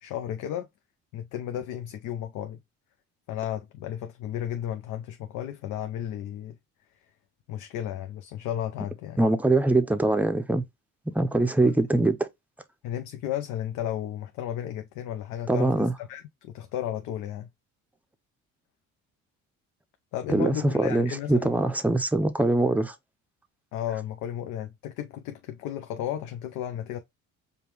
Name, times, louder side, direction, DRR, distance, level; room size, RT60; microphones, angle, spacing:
voice 1, 0.0-0.7 1.1-2.6 3.3-6.6 7.5-9.2 11.6-11.8 12.8-17.5 20.1-21.6 23.7-27.0, left 10 dB, 90° left, 0.6 m, -34 dB
voice 2, 9.2-10.6 11.1-12.1 15.5-15.9 20.3-22.9, right 2 dB, 5° right, 0.5 m, -23 dB
5.1 x 2.3 x 2.9 m
cardioid pair, 120°, 30 cm